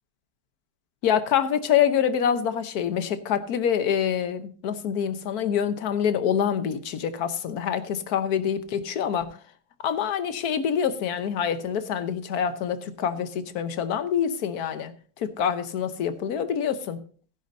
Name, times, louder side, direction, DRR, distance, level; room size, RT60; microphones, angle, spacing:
voice 1, 1.0-9.4 9.8-14.9 15.2-17.0, left 8 dB, 75° left, 1.4 m, -26 dB
15.5 x 10.5 x 2.7 m
omnidirectional pair, 1.7 m